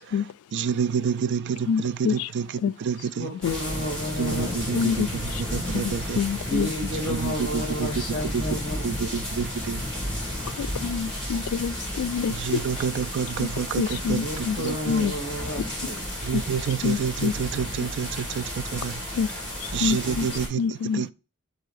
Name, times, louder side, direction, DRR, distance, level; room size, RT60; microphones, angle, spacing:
voice 1, 0.0-3.3 4.2-6.2 7.1-7.9 8.3-8.4 8.8-9.8 12.3-15.1 16.2-19.0 19.3-19.4 19.7-21.1, right 7 dB, 55° right, 0.3 m, -29 dB
voice 2, 1.7-2.3 2.6-2.7 3.4-3.6 4.7-5.1 5.7-6.7 10.6-12.4 13.4-13.5 13.8-14.6 14.9-15.1 16.3-16.4 16.8-17.3 19.1-19.3 19.6-20.3 20.6-21.0, left 6 dB, 85° left, 0.3 m, -26 dB
voice 3, 3.2-4.9 6.4-9.1 14.2-16.1 20.0-20.1 21.0-21.1, equal, 25° left, 1.7 m, -32 dB
sound 1, 3.4-20.5, equal, 5° left, 3.2 m, -33 dB
7.5 x 2.7 x 4.8 m
head